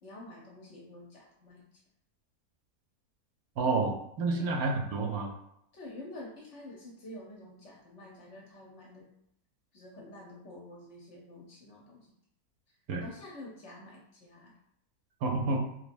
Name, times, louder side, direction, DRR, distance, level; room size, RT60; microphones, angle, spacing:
voice 1, 0.0-1.8 4.3-4.5 5.7-9.1 9.7-12.1 13.0-14.5, left 1 dB, 60° left, -2 dB, 0.8 m, -48 dB
voice 2, 3.6-5.3 12.9-13.0 15.2-15.6, right 3 dB, 75° right, 2 dB, 1.0 m, -29 dB
4.0 x 2.7 x 2.5 m, 0.76 s
omnidirectional pair, 1.7 m